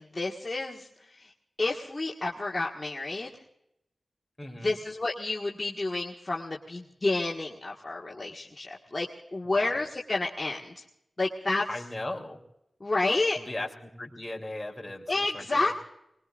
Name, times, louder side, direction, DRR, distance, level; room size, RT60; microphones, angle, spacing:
voice 1, 0.1-1.3 1.6-3.3 4.6-10.8 11.2-11.7 12.8-13.4 15.1-15.8, left 2 dB, 35° left, -3 dB, 1.8 m, -30 dB
voice 2, 4.4-4.7 9.4-9.8 11.7-12.4 13.4-15.8, left 1 dB, 15° left, 0 dB, 3.6 m, -38 dB
25.0 x 21.5 x 2.6 m, 0.81 s
wide cardioid pair, 65°, 0 cm